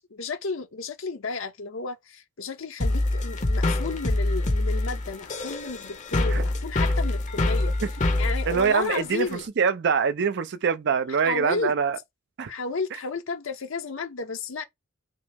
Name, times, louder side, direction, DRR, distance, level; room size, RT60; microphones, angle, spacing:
voice 1, 0.1-7.7 8.2-9.4 11.1-11.7 12.5-14.6, left 4 dB, 70° left, 0.9 m, -32 dB
sound 1, 2.8-9.4, left 2 dB, 35° left, 0.7 m, -25 dB
voice 2, 8.5-12.0 12.4-12.5, right 6 dB, 55° right, 0.5 m, -24 dB
5.2 x 2.0 x 3.4 m
head